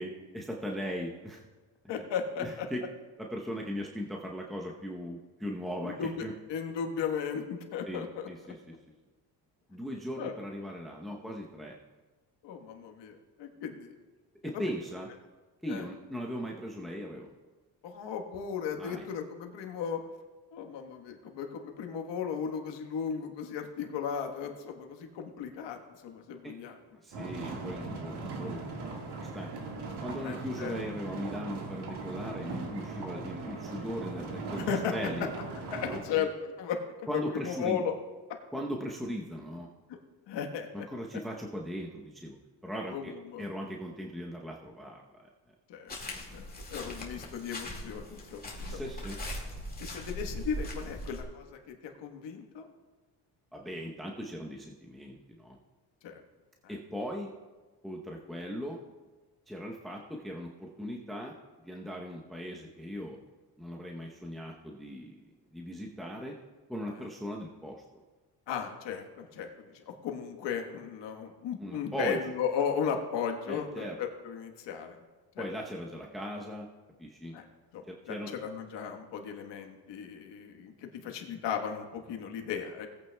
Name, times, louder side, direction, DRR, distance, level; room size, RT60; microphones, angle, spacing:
voice 1, 0.0-1.4 2.4-2.8 3.2-6.3 7.9-8.8 9.7-11.8 14.4-15.1 15.6-17.3 18.8-19.1 26.4-26.5 26.9-28.6 29.2-29.5 30.0-34.6 34.9-35.3 35.8-36.3 37.1-37.8 38.5-39.7 40.7-42.3 42.6-43.1 43.4-45.3 48.7-49.2 53.5-55.6 56.7-57.3 57.8-58.8 59.5-61.3 61.6-63.2 63.6-66.4 66.7-67.8 71.6-72.2 73.5-74.0 75.4-76.7 77.0-77.3 77.9-78.3, equal, ahead, -1 dB, 0.8 m, -38 dB
voice 2, 1.9-2.7 5.8-8.3 10.2-10.3 12.4-13.9 14.5-14.6 15.7-15.8 17.8-20.0 20.5-26.7 27.9-28.0 30.2-30.8 34.6-34.9 35.7-37.9 40.3-40.9 42.9-43.5 45.7-48.8 49.8-52.7 56.0-56.2 56.6-56.7 68.5-75.0 75.3-75.5 77.3-77.4 77.7-82.9, left 7 dB, 80° left, 4 dB, 1.4 m, -36 dB
sound 1, 27.1-36.0, right 3 dB, 70° right, 1.8 m, -39 dB
sound 2, 45.9-51.2, equal, 20° left, 2.0 m, -40 dB
18.5 x 8.7 x 2.3 m, 1.3 s
cardioid pair, 110°, 42 cm